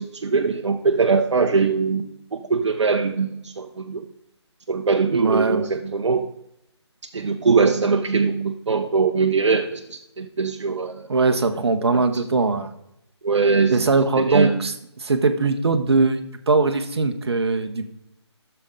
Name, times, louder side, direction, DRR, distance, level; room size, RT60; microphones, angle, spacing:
voice 1, 0.0-2.1 2.5-4.0 4.7-6.3 7.1-9.8 10.2-11.1 13.2-13.7 14.3-14.5, right 4 dB, 85° right, 3 dB, 0.8 m, -21 dB
voice 2, 5.1-5.7 11.1-12.7 13.7-16.2 16.5-17.9, right 3 dB, 60° right, 7 dB, 1.1 m, -21 dB
12.5 x 6.9 x 3.7 m, 0.81 s
hypercardioid pair, 175°, 15 cm